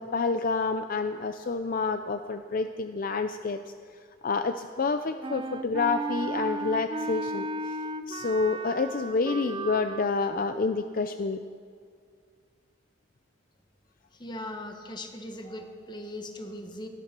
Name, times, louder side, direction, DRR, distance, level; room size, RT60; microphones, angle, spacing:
voice 1, 0.0-3.6 4.2-7.8 8.1-11.4, left 4 dB, 50° left, 9 dB, 0.5 m, -28 dB
Wind instrument woodwind instrument, 5.2-10.1, right 2 dB, 25° right, 0.5 m, -34 dB
voice 2, 14.1-16.9, left 1 dB, 25° left, 5 dB, 1.4 m, -39 dB
18.0 x 11.5 x 6.0 m, 2.1 s
head